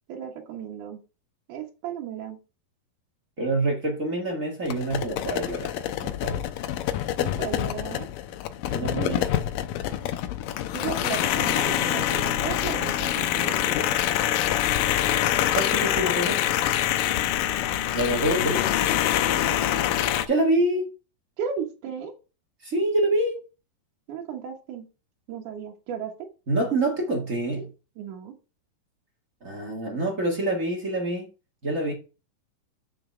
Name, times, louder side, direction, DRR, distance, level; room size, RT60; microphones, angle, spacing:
voice 1, 0.1-1.0 1.5-2.4 7.2-8.1 8.8-9.3 10.7-13.9 19.3-20.0 21.4-22.1 24.1-24.9 25.3-26.3 28.0-28.3, right 7 dB, 65° right, 2.3 m, -35 dB
voice 2, 3.4-6.4 8.7-9.3 15.5-16.4 17.9-18.7 20.3-20.9 22.6-23.4 26.5-27.7 29.4-31.3 31.6-31.9, right 1 dB, 50° right, 0.9 m, -26 dB
sound 1, 4.7-20.3, left 12 dB, 85° left, 2.0 m, -25 dB
8.5 x 7.3 x 3.3 m
omnidirectional pair, 4.6 m